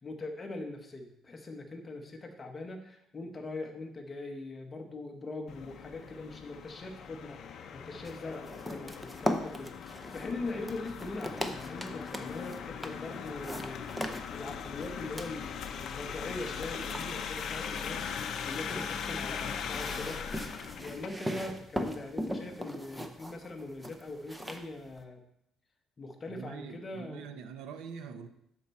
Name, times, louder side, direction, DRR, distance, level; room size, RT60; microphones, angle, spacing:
voice 1, 0.0-7.4 7.7-20.2 20.8-25.2 26.0-27.2, left 2 dB, 20° left, 3 dB, 0.9 m, -41 dB
sound 1, 5.5-21.1, left 7 dB, 45° left, 0.6 m, -40 dB
sound 2, 8.0-25.0, equal, 5° right, 0.5 m, -40 dB
voice 2, 26.3-28.3, right 6 dB, 90° right, 9 dB, 0.7 m, -44 dB
12.0 x 4.5 x 4.2 m, 0.76 s
cardioid pair, 180°, 0 cm